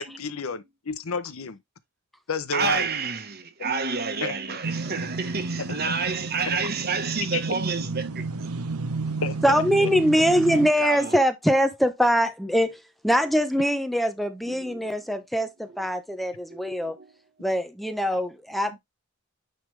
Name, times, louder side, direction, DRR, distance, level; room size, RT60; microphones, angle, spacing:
voice 1, 0.0-1.6 2.3-2.9 4.2-4.3 7.3-7.4 9.2-9.9, left 5 dB, 75° left, 0.8 m, -31 dB
voice 2, 2.5-8.5 10.8-11.2 14.5-14.9 15.7-15.8 16.5-17.1, right 5 dB, 45° right, 1.2 m, -30 dB
sound 1, 4.6-10.7, right 3 dB, 85° right, 0.9 m, -32 dB
voice 3, 9.4-17.0 17.4-18.8, equal, ahead, 0.8 m, -23 dB
9.4 x 3.5 x 3.2 m
head